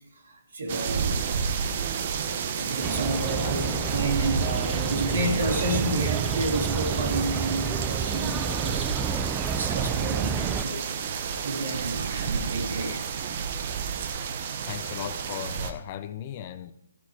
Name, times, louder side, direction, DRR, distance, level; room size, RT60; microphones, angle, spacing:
voice 1, 0.2-1.2 2.6-11.0 11.4-13.1 14.2-14.4, right 2 dB, 60° right, 1 dB, 3.1 m, -30 dB
sound 1, 0.7-15.7, right 6 dB, 40° right, 1.2 m, -31 dB
sound 2, 2.8-10.6, right 7 dB, 15° right, 0.5 m, -30 dB
voice 2, 3.2-3.9 14.7-16.7, left 11 dB, 35° left, 12 dB, 0.8 m, -37 dB
15.0 x 9.9 x 3.6 m, 0.78 s
figure-of-eight pair, 135°, 0 cm